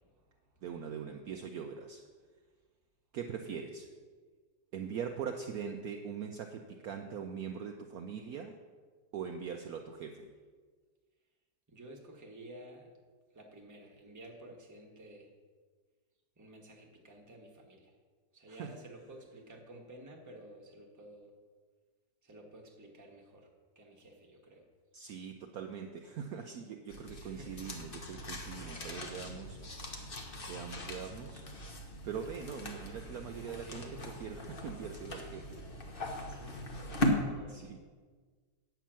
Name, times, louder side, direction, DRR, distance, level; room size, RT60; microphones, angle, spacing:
voice 1, 0.0-0.6 11.7-12.9 13.3-15.3 16.4-17.9 18.3-21.3 22.2-24.7 27.2-27.7 33.4-34.1 36.3-37.8, right 1 dB, 10° right, 0 dB, 1.0 m, -53 dB
voice 2, 0.6-2.0 3.1-3.9 4.7-8.6 9.1-10.3 18.5-18.7 24.9-29.9 30.5-31.4 32.0-35.6 37.5-37.8, right 7 dB, 70° right, 4 dB, 0.9 m, -42 dB
sound 1, 26.9-37.1, equal, 35° left, 1.0 m, -39 dB
9.2 x 5.8 x 7.4 m, 1.5 s
omnidirectional pair, 2.0 m